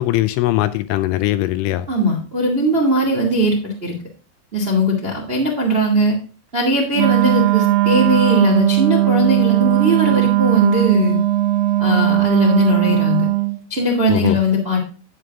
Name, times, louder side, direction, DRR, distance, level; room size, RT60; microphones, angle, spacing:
voice 1, 0.0-1.9 14.1-14.4, left 16 dB, 85° left, 2.9 m, -20 dB
voice 2, 1.9-3.9 4.5-6.2 6.5-11.2 11.8-13.3 13.7-14.8, equal, 65° right, 0.6 m, -19 dB
Wind instrument woodwind instrument, 7.0-13.6, right 18 dB, 85° right, 3.7 m, -17 dB
12.5 x 9.3 x 2.5 m
omnidirectional pair, 6.0 m